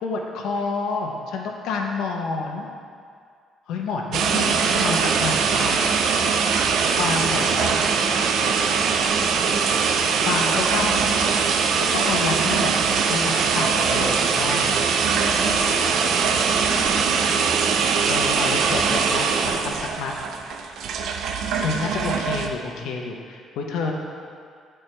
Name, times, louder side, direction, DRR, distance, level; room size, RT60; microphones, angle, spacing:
voice 1, 0.0-2.7 3.7-5.8 6.9-7.7 10.3-11.0 11.9-12.7 13.1-14.8 18.1-20.1 21.6-23.9, left 4 dB, 80° left, 1 dB, 0.7 m, -28 dB
sound 1, 4.1-22.5, right 5 dB, 65° right, 0.5 m, -22 dB
voice 2, 4.3-4.9 5.5-6.1 8.8-9.2 10.1-10.9 15.2-16.9, right 1 dB, 15° right, -9 dB, 1.5 m, -37 dB
9.9 x 4.4 x 3.3 m, 2.2 s
cardioid pair, 150°, 0 cm